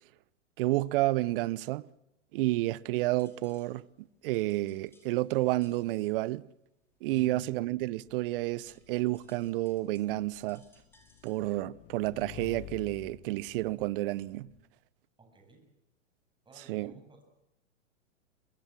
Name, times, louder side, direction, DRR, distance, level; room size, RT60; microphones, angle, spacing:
voice 1, 0.6-1.8 2.3-3.8 4.2-6.4 7.0-10.6 11.2-14.5 16.7-16.9, right 18 dB, 45° right, 0.9 m, -30 dB
sound 1, 2.6-11.9, left 1 dB, 5° left, 5.6 m, -68 dB
sound 2, 7.1-14.6, left 2 dB, 65° left, 6.7 m, -59 dB
Motorcycle / Engine, 7.5-14.6, left 16 dB, 30° left, 0.9 m, -51 dB
voice 2, 15.2-15.7 16.4-17.2, right 2 dB, 10° right, 7.9 m, -57 dB
24.0 x 21.0 x 7.5 m
hypercardioid pair, 110°, 38 cm